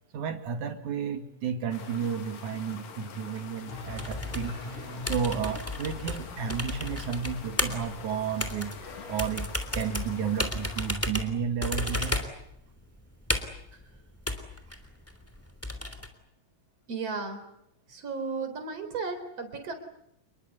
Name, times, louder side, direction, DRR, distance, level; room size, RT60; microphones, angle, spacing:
voice 1, 0.1-4.6 5.1-12.2, right 7 dB, 60° right, 7 dB, 3.6 m, -32 dB
sound 1, 1.7-10.9, left 6 dB, 80° left, 4.3 m, -46 dB
sound 2, 3.7-9.2, left 1 dB, 55° left, 7.8 m, -44 dB
sound 3, 3.9-16.1, left 1 dB, 5° left, 2.8 m, -34 dB
voice 2, 16.9-17.5 17.9-19.7, right 4 dB, 45° right, 8 dB, 5.2 m, -34 dB
29.0 x 22.0 x 8.2 m, 0.77 s
omnidirectional pair, 3.8 m